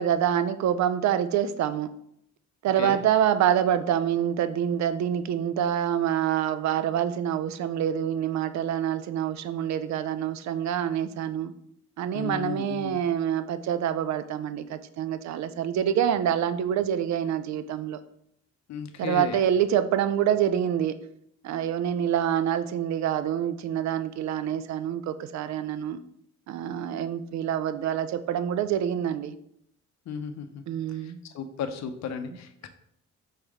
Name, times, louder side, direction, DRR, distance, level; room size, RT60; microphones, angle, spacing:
voice 1, 0.0-1.9 2.6-11.5 12.0-18.0 19.0-21.1 21.4-26.0 26.5-29.4 30.7-31.2, right 9 dB, 65° right, 0.4 m, -26 dB
voice 2, 12.1-13.0 18.7-19.4 30.1-30.6 31.0-32.7, left 6 dB, 60° left, 0.6 m, -34 dB
4.2 x 3.4 x 3.5 m
cardioid pair, 90°, 30 cm